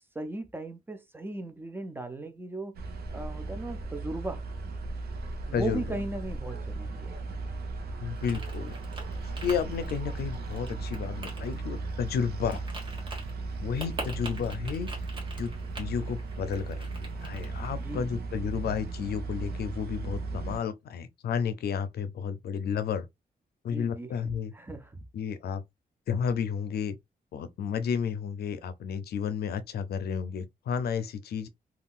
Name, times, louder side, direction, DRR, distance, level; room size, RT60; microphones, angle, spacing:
voice 1, 0.1-2.8 3.1-4.4 5.5-7.2 17.7-18.1 23.7-25.1, right 2 dB, 15° right, 0.4 m, -37 dB
sound 1, 2.7-20.6, right 3 dB, 75° right, 0.7 m, -36 dB
sound 2, 4.2-10.7, right 3 dB, 50° right, 1.2 m, -53 dB
voice 2, 5.5-5.8 8.0-8.7 9.4-12.6 13.6-14.9 15.4-15.5 15.8-23.1 23.6-24.5 25.1-25.6 26.1-27.0 27.3-31.5, left 7 dB, 80° left, 0.5 m, -32 dB
sound 3, 8.2-17.9, right 2 dB, 30° right, 1.4 m, -45 dB
3.6 x 2.3 x 2.4 m
wide cardioid pair, 145°, 16 cm